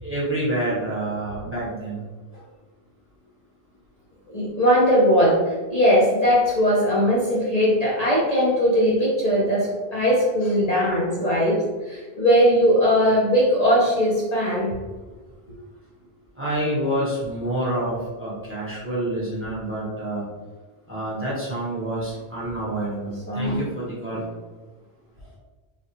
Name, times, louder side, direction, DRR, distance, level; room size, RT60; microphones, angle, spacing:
voice 1, 0.0-2.0 2.3-2.4 16.4-20.2 20.9-24.3, right 1 dB, 15° right, -7 dB, 0.8 m, -28 dB
voice 2, 4.3-14.7 23.3-23.6, equal, 45° left, -7 dB, 0.7 m, -19 dB
3.2 x 2.3 x 2.8 m, 1.3 s
omnidirectional pair, 1.1 m